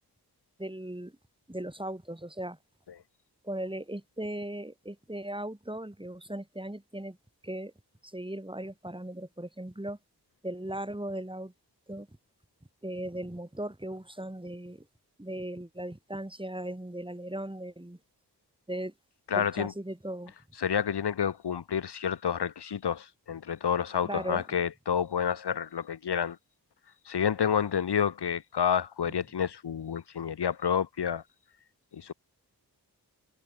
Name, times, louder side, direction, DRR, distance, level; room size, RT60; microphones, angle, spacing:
voice 1, 0.6-1.2 1.5-2.6 3.4-7.2 7.4-7.7 8.0-10.0 10.4-11.5 11.9-12.1 12.8-14.9 15.2-18.0 18.7-18.9 19.3-20.3 24.0-24.4 29.1-29.2, right 1 dB, 15° right, 4.1 m, -38 dB
voice 2, 19.3-19.7 20.6-26.4 27.1-31.2 31.9-32.1, left 8 dB, 85° left, 1.2 m, -29 dB
cardioid pair, 40°, 39 cm